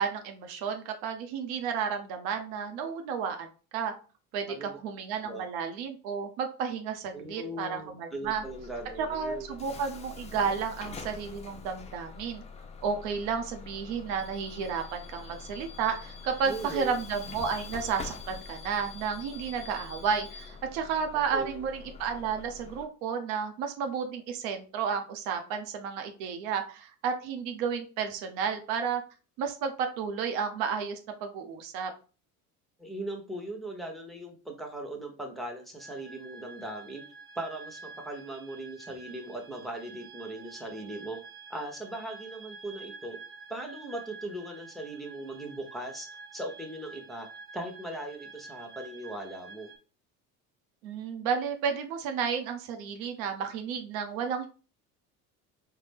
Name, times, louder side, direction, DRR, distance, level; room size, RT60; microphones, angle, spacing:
voice 1, 0.0-3.5 3.7-3.9 4.3-8.4 9.0-12.4 12.8-29.0 29.4-31.9 50.8-54.5, right 6 dB, 65° right, 5 dB, 0.7 m, -32 dB
voice 2, 7.1-9.6 16.4-16.9 21.3-21.7 32.8-37.0 37.3-41.2 41.5-43.2 43.5-47.3 47.5-49.7, right 1 dB, ahead, 1 dB, 0.9 m, -39 dB
Bus / Alarm, 8.2-22.8, left 5 dB, 15° left, 0.3 m, -45 dB
sound 1, 35.8-49.8, right 4 dB, 30° right, 1.2 m, -49 dB
3.9 x 2.1 x 3.4 m, 0.37 s
hypercardioid pair, 65°, 45 cm